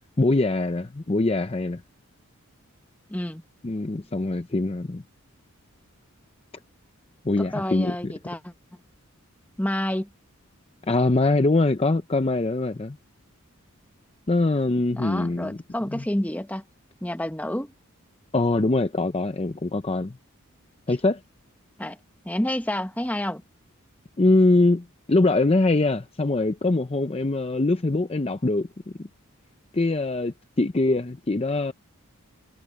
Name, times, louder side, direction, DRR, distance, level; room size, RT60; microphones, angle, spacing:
voice 1, 0.2-1.8 3.6-5.0 7.2-8.1 10.9-13.0 14.3-15.6 15.9-16.0 18.3-20.2 20.9-21.2 24.2-28.7 29.0-29.1 29.7-31.7, left 2 dB, 25° left, 0.6 m, -23 dB
voice 2, 3.1-3.4 7.4-8.5 9.6-10.1 14.9-16.6 17.0-17.7 21.8-22.0 22.2-23.4, left 1 dB, 5° left, 1.0 m, -29 dB
head